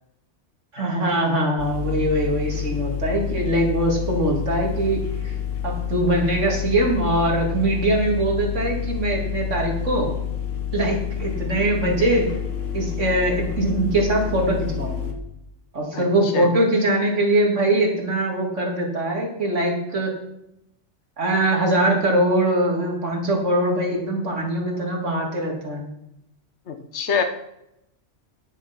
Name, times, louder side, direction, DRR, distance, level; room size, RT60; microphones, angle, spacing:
voice 1, 0.7-5.3 5.6-10.1 10.7-12.3 12.7-15.1 15.7-20.1 21.2-25.8, right 1 dB, 75° right, 0 dB, 2.6 m, -22 dB
sound 1, 1.6-15.1, left 9 dB, 85° left, 1.7 m, -28 dB
voice 2, 15.9-16.5 26.7-27.2, left 6 dB, 65° left, 6 dB, 1.4 m, -26 dB
10.5 x 6.9 x 5.8 m, 0.82 s
omnidirectional pair, 1.2 m